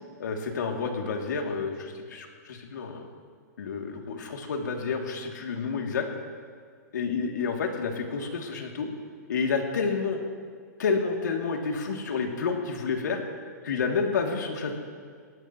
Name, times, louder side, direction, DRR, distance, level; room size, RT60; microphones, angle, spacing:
voice 1, 0.2-3.1 3.6-6.1 6.9-8.9 9.3-10.2 10.8-13.2 13.6-14.8, left 5 dB, 80° left, 1 dB, 2.8 m, -29 dB
22.0 x 17.5 x 3.1 m, 2.1 s
hypercardioid pair, 175°, 10 cm